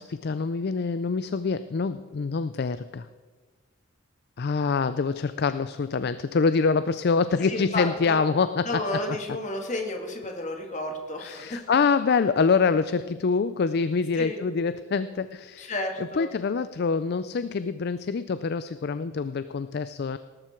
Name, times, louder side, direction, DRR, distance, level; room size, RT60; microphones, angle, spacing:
voice 1, 0.0-3.1 4.4-8.7 11.2-15.7 16.2-20.2, left 5 dB, 50° left, 13 dB, 0.4 m, -25 dB
voice 2, 7.5-8.2 8.6-11.7 14.1-14.4 15.6-16.3, left 2 dB, 35° left, 2 dB, 2.1 m, -32 dB
19.0 x 12.0 x 4.5 m, 1.4 s
head